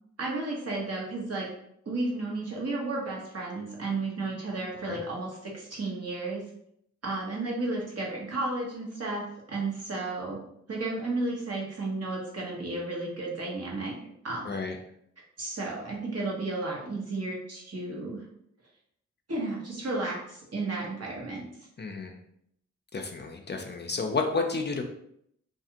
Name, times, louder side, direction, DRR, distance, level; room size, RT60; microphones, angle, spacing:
voice 1, 0.2-1.5 1.9-6.4 7.0-10.4 10.7-13.9 14.2-14.5 15.4-18.2 19.3-21.4, right 2 dB, 55° right, -3 dB, 1.0 m, -33 dB
voice 2, 14.4-14.8 21.8-22.2 22.9-24.8, left 4 dB, 35° left, 3 dB, 0.4 m, -31 dB
2.5 x 2.4 x 2.8 m, 0.72 s
cardioid pair, 50°, 29 cm